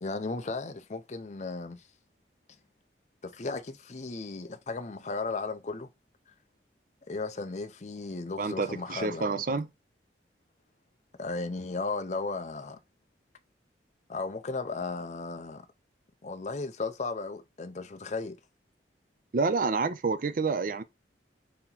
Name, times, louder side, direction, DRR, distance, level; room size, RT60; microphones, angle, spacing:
voice 1, 0.0-1.8 3.2-5.9 7.1-9.6 11.2-12.8 14.1-15.7 16.2-18.4, left 3 dB, 40° left, 0.5 m, -35 dB
voice 2, 8.4-9.7 19.3-20.8, right 4 dB, 45° right, 0.4 m, -28 dB
4.2 x 2.9 x 3.9 m
head